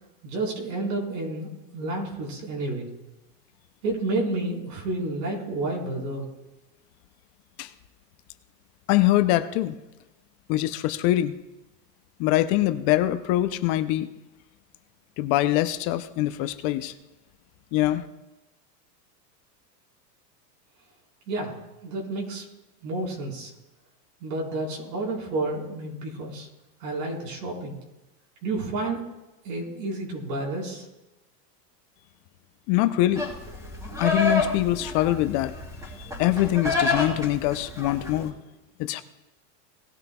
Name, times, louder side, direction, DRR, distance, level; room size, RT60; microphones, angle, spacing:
voice 1, 0.2-2.9 3.8-6.3 21.3-21.5 21.8-22.4 22.8-23.5 24.2-26.5 26.8-27.8 28.4-29.0 29.4-30.9, right 2 dB, 75° right, -2 dB, 4.5 m, -30 dB
voice 2, 8.9-9.8 10.5-11.4 12.2-14.1 15.2-16.9 17.7-18.1 32.7-33.3 34.0-35.5 36.0-38.3 38.8-39.0, left 15 dB, 50° left, 12 dB, 0.7 m, -23 dB
Livestock farm animals working animals, 33.2-38.3, left 3 dB, 5° right, 3.2 m, -29 dB
18.5 x 11.5 x 2.3 m, 1.0 s
supercardioid pair, 125°, 49 cm